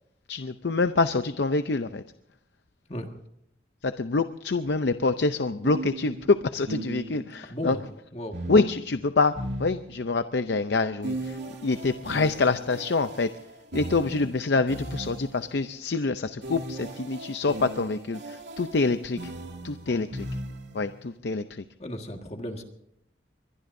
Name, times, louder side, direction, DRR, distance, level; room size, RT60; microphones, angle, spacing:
voice 1, 0.3-2.0 3.8-7.8 8.5-13.3 13.7-19.3 19.6-20.3 20.7-21.6, left 3 dB, 70° left, 10 dB, 0.6 m, -26 dB
sound 1, 4.6-4.8 5.6-7.4 8.3-10.2 11.0-15.5 16.4-20.9, right 1 dB, 75° right, 2.3 m, -38 dB
voice 2, 7.5-7.8 8.1-8.5 19.9-20.0 21.8-22.6, equal, 35° left, 4 dB, 1.7 m, -35 dB
22.5 x 22.0 x 2.7 m, 0.78 s
head